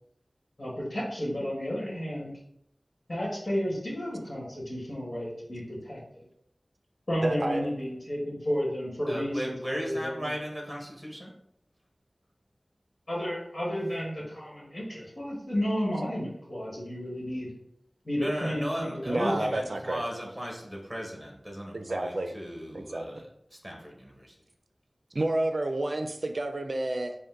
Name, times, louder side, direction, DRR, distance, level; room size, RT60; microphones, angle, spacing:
voice 1, 0.6-2.3 3.1-6.2 7.1-10.3 13.1-17.5 18.0-19.3, equal, 55° left, -5 dB, 1.5 m, -32 dB
voice 2, 7.2-7.7 19.1-20.0 21.7-22.3 22.7-23.2 25.1-27.1, right 1 dB, 60° right, 6 dB, 0.5 m, -30 dB
voice 3, 9.1-11.3 18.2-24.3, equal, 5° right, -1 dB, 1.1 m, -37 dB
5.1 x 2.2 x 3.7 m, 0.74 s
wide cardioid pair, 60°, 0 cm